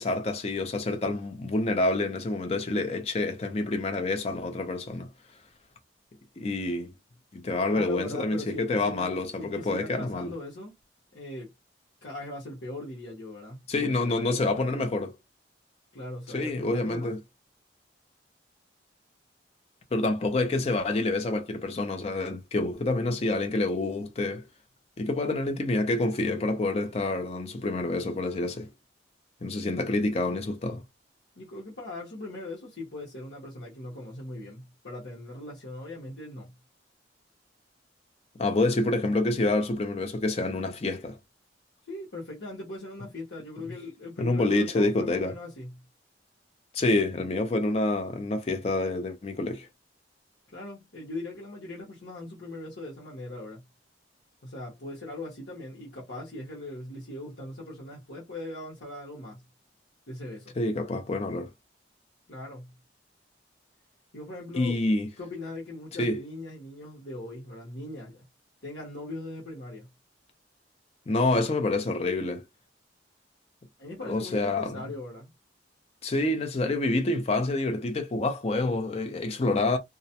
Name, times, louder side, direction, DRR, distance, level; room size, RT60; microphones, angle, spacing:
voice 1, 0.0-5.1 6.4-6.9 7.3-10.3 13.7-15.1 16.3-17.2 19.9-24.5 25.0-28.7 29.4-30.8 38.4-41.2 44.2-45.3 46.7-49.7 60.6-61.5 64.6-65.1 66.0-66.2 71.1-72.4 74.1-74.8 76.0-79.8, left 2 dB, 35° left, 0.5 m, -27 dB
voice 2, 7.7-9.1 9.4-10.7 11.1-11.5 12.0-14.8 15.9-17.1 31.3-36.5 41.9-45.7 50.5-53.6 54.4-59.4 60.1-60.6 62.3-62.7 64.1-64.8 65.2-68.2 68.6-69.9 73.8-75.3, left 2 dB, 75° left, 0.9 m, -40 dB
2.4 x 2.1 x 2.7 m
head